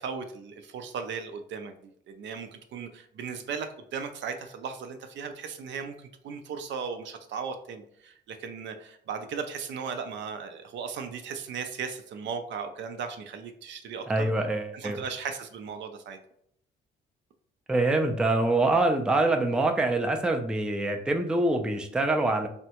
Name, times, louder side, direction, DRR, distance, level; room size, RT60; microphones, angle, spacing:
voice 1, 0.0-1.7 2.1-14.2 14.7-16.2, right 6 dB, 65° right, 7 dB, 0.5 m, -37 dB
voice 2, 14.1-15.0 17.7-22.5, right 2 dB, 5° right, 3 dB, 0.4 m, -25 dB
3.5 x 2.1 x 2.8 m, 0.70 s
cardioid pair, 90°, 20 cm